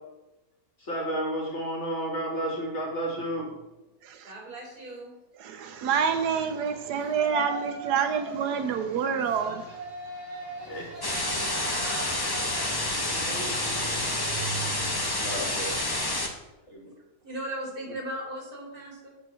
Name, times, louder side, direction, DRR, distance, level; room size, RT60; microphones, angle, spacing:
voice 1, 0.8-3.5 10.7-11.1 15.2-16.1 16.7-16.9, right 1 dB, 45° left, -2 dB, 2.3 m, -32 dB
voice 2, 4.2-5.2 11.2-12.5 13.0-13.9 17.2-19.1, right 1 dB, 65° right, -2 dB, 3.3 m, -39 dB
voice 3, 5.4-9.6 13.1-13.2, right 7 dB, 85° right, 7 dB, 1.3 m, -27 dB
Yell, 5.5-15.8, right 2 dB, 50° right, 3.6 m, -40 dB
sound 1, 11.0-16.3, left 2 dB, 20° left, 0.7 m, -29 dB
8.3 x 4.4 x 5.7 m, 0.97 s
omnidirectional pair, 1.7 m